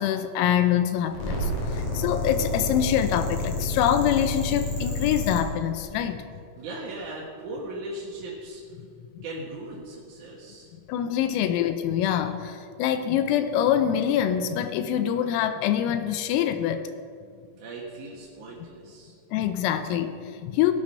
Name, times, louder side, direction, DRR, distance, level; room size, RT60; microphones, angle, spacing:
voice 1, 0.0-6.4 9.2-9.3 10.9-16.9 19.3-20.7, left 10 dB, 85° left, 9 dB, 3.5 m, -25 dB
sound 1, 1.1-5.4, left 3 dB, 40° left, 4.0 m, -29 dB
voice 2, 6.6-8.8 9.2-10.7 17.6-19.1, right 2 dB, 60° right, -5 dB, 2.1 m, -38 dB
17.5 x 9.7 x 5.6 m, 2.2 s
omnidirectional pair, 6.0 m